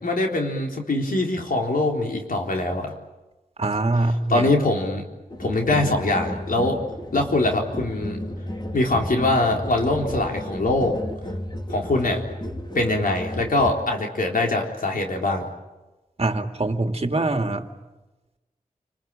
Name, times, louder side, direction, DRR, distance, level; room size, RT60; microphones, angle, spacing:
voice 1, 0.0-2.9 4.3-5.0 5.4-6.8 7.1-8.2 8.7-11.0 11.7-12.2 12.7-15.5, left 2 dB, 75° left, 1 dB, 3.8 m, -23 dB
voice 2, 3.6-4.5 16.2-17.7, right 2 dB, 45° right, 5 dB, 2.4 m, -23 dB
sound 1, 5.3-13.7, left 1 dB, 30° left, 3.1 m, -33 dB
28.5 x 21.0 x 8.9 m, 1.1 s
cardioid pair, 55°, 15 cm